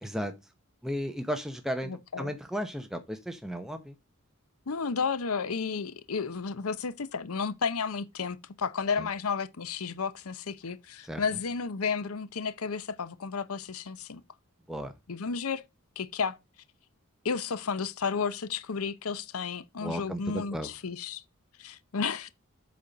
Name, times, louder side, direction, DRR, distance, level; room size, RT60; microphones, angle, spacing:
voice 1, 0.0-0.3 0.8-1.9 2.2-4.0 9.0-9.1 11.0-11.2 14.7-14.9 19.8-20.7, equal, ahead, 0.8 m, -34 dB
voice 2, 1.9-2.3 4.7-14.2 15.1-15.6 16.0-16.4 17.2-21.2 21.6-22.3, left 5 dB, 85° left, 0.7 m, -32 dB
8.4 x 4.3 x 5.2 m
head